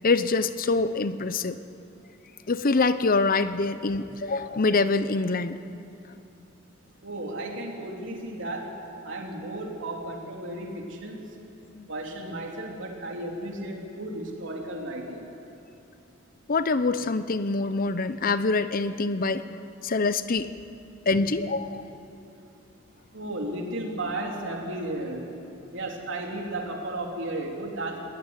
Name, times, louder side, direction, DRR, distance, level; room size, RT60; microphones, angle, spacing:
voice 1, 0.0-1.6 2.5-5.6 11.7-11.9 16.5-19.4 19.8-20.6 21.1-21.9, left 3 dB, 45° left, 12 dB, 0.7 m, -25 dB
voice 2, 7.0-8.8 9.0-11.2 11.9-15.3 23.1-25.3 25.7-28.0, right 1 dB, 65° right, 0 dB, 3.5 m, -34 dB
21.0 x 17.0 x 9.8 m, 2.7 s
head